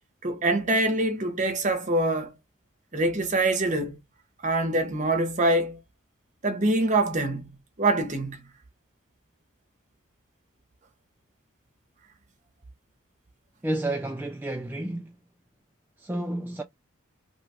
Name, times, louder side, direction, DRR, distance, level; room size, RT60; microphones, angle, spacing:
voice 1, 0.2-2.3 2.9-4.0 4.4-5.8 6.4-8.5, right 2 dB, 35° right, 0.9 m, -25 dB
voice 2, 13.6-15.1 16.0-16.6, right 1 dB, 10° right, 0.3 m, -30 dB
3.0 x 2.2 x 4.2 m
head